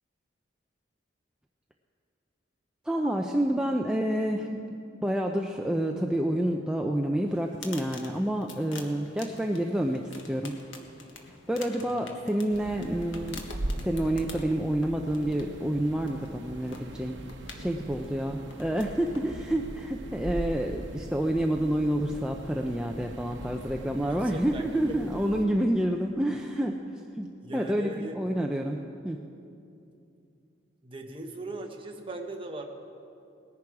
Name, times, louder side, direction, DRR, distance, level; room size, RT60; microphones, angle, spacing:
voice 1, 2.9-4.8 5.0-10.5 11.5-13.4 13.8-17.2 17.5-26.8 27.2-28.8 29.0-29.2, right 1 dB, 5° right, 1 dB, 0.5 m, -28 dB
sound 1, 7.3-19.9, left 4 dB, 90° left, 1.4 m, -48 dB
sound 2, 12.5-25.5, right 1 dB, 75° right, 0.9 m, -40 dB
voice 2, 24.0-25.0 27.4-28.2 30.8-32.7, right 1 dB, 30° right, 3 dB, 1.1 m, -39 dB
19.0 x 11.0 x 4.8 m, 2.6 s
head